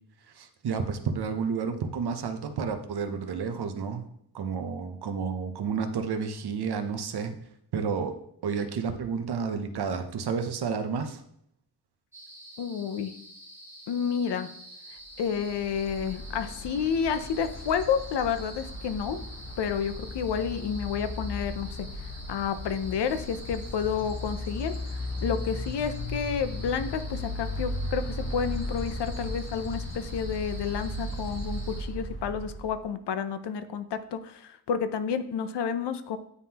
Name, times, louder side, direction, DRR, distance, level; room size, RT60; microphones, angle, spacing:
voice 1, 0.3-4.1 4.3-7.4 7.7-8.2 8.4-11.2, right 5 dB, 65° right, 7 dB, 0.7 m, -31 dB
sound 1, 12.1-31.8, right 1 dB, 5° right, 1.3 m, -47 dB
voice 2, 12.6-13.1 13.9-14.5 15.2-19.2 19.6-36.2, left 7 dB, 75° left, 11 dB, 0.6 m, -30 dB
sound 2, 15.2-32.8, left 1 dB, 30° left, 0.8 m, -36 dB
9.5 x 3.6 x 2.9 m, 0.72 s
wide cardioid pair, 140°, 42 cm